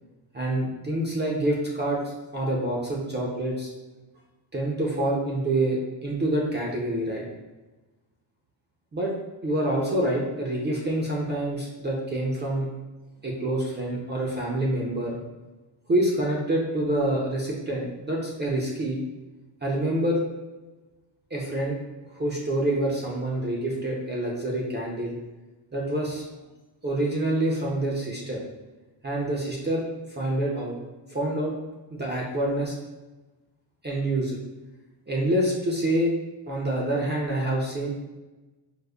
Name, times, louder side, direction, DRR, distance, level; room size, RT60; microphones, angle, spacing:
voice 1, 0.3-3.7 4.5-7.2 8.9-9.1 9.4-12.7 13.2-15.2 15.9-19.0 19.6-20.2 21.3-21.8 22.1-25.2 25.7-26.2 26.8-28.4 29.0-30.7 31.1-31.5 31.9-32.7 33.8-34.4 35.1-36.1 36.5-37.9, right 1 dB, 25° right, -3 dB, 0.4 m, -27 dB
5.0 x 2.0 x 2.2 m, 1.1 s
cardioid pair, 135°, 47 cm